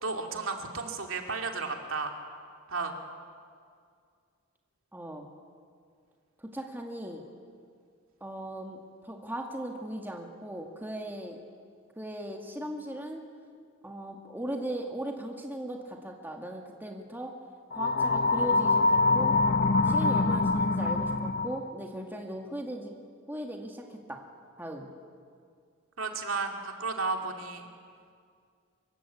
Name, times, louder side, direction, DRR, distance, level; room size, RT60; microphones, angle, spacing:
voice 1, 0.0-2.1 2.7-3.0 26.0-27.7, right 4 dB, 65° right, 3 dB, 2.7 m, -33 dB
voice 2, 4.9-5.3 6.4-7.2 8.2-11.4 12.0-13.2 13.8-17.3 17.7-19.4 19.8-23.0 23.3-24.2 24.6-24.9, right 1 dB, 10° right, 2 dB, 1.9 m, -38 dB
sound 1, 17.7-21.7, left 3 dB, 45° left, 0.8 m, -25 dB
25.0 x 23.0 x 8.4 m, 2.2 s
head